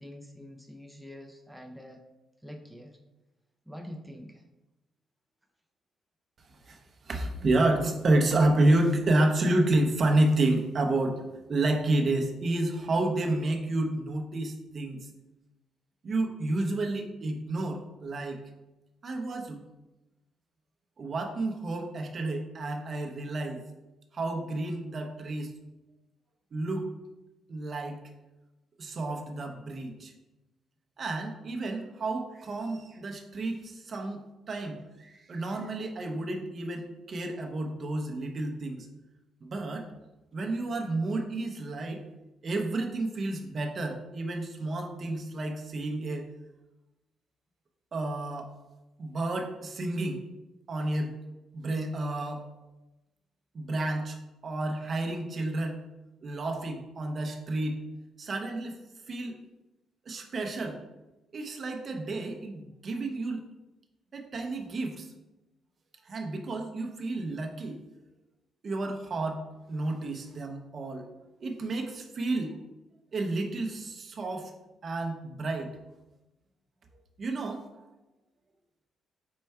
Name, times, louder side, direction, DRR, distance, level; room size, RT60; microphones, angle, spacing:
voice 1, 0.0-2.0 2.4-3.0 3.7-4.4, equal, 5° right, 2 dB, 0.4 m, -45 dB
voice 2, 7.0-15.0 16.0-18.4 19.0-19.6 21.0-23.6 24.1-25.5 26.5-26.9 27.5-28.0 28.8-30.1 31.0-34.2 34.5-38.9 39.4-39.9 40.3-42.0 42.4-46.3 47.9-48.5 49.0-50.2 50.7-51.1 51.5-52.4 53.5-54.2 54.4-55.8 56.2-57.8 58.2-58.8 59.1-59.3 60.1-60.8 61.3-63.4 64.1-65.1 66.1-67.8 68.6-69.4 69.7-71.1 71.4-72.5 73.1-74.5 74.8-75.7 77.2-77.7, right 2 dB, 45° right, 3 dB, 0.6 m, -30 dB
4.5 x 2.2 x 4.3 m, 1.0 s
cardioid pair, 90°, 0 cm